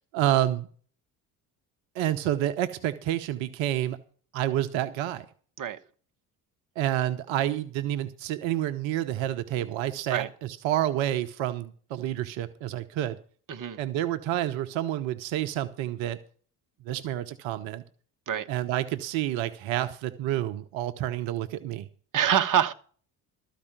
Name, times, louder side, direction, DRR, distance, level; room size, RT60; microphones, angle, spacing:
voice 1, 0.1-0.7 1.9-4.0 4.3-5.3 6.8-13.2 13.8-16.2 16.8-17.8 18.5-21.9, right 12 dB, 65° right, 1.0 m, -29 dB
voice 2, 13.5-13.8 18.3-18.5 22.1-22.7, right 9 dB, 40° right, 1.2 m, -25 dB
13.5 x 5.0 x 9.0 m
hypercardioid pair, 60°, 50 cm